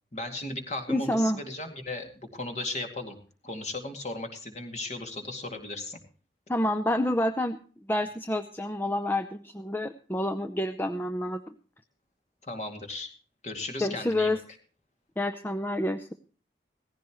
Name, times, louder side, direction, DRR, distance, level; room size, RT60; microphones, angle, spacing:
voice 1, 0.1-3.2 3.4-6.0 12.4-13.1 13.4-14.4, left 2 dB, 40° left, 5 dB, 2.3 m, -36 dB
voice 2, 0.9-1.4 6.5-7.6 7.9-11.4 13.8-14.4 15.2-16.1, left 1 dB, 10° left, 8 dB, 0.5 m, -28 dB
18.0 x 15.0 x 3.0 m, 0.40 s
head